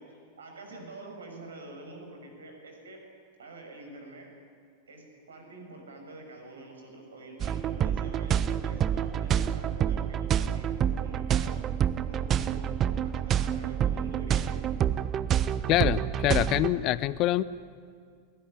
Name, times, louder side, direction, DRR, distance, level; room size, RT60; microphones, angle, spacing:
voice 1, 0.0-3.0 3.4-4.3 4.9-11.6 12.1-14.7, right 2 dB, 70° right, 3 dB, 6.1 m, -46 dB
sound 1, 7.4-16.7, right 9 dB, 30° right, 0.7 m, -28 dB
voice 2, 15.7-17.4, left 15 dB, 40° left, 18 dB, 0.6 m, -25 dB
21.0 x 18.5 x 10.0 m, 2.1 s
figure-of-eight pair, 90°, 0 cm